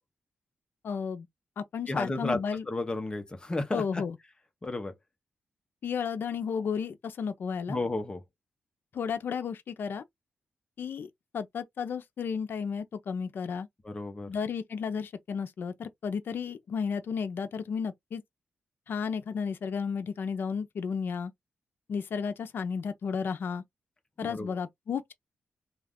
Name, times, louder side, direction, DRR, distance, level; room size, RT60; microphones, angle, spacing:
voice 1, 0.8-1.3 1.6-2.6 3.7-4.2 5.8-7.8 8.9-10.0 10.8-11.1 11.3-13.7 14.3-18.2 18.9-21.3 21.9-23.6 24.2-25.1, left 6 dB, 60° left, 0.5 m, -33 dB
voice 2, 1.9-2.4 2.7-4.0 4.6-4.9 7.7-8.2 13.8-14.3 24.2-24.5, left 2 dB, 20° left, 0.7 m, -32 dB
2.4 x 2.3 x 3.5 m
wide cardioid pair, 125°, 4 cm